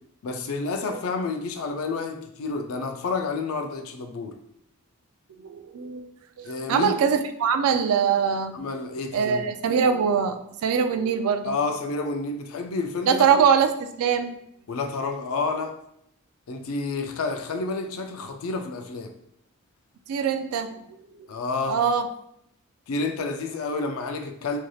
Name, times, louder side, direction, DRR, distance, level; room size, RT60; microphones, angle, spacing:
voice 1, 0.2-4.4 6.4-7.0 8.5-9.4 11.4-13.4 14.7-15.8 16.5-19.1 21.3-21.8 22.9-24.6, left 3 dB, 70° left, 6 dB, 0.4 m, -29 dB
voice 2, 5.4-6.0 6.4-8.6 9.1-11.6 13.1-13.7 14.0-14.3 20.1-21.0 21.7-22.1, right 7 dB, 80° right, 9 dB, 0.3 m, -23 dB
3.2 x 2.6 x 2.3 m, 0.73 s
head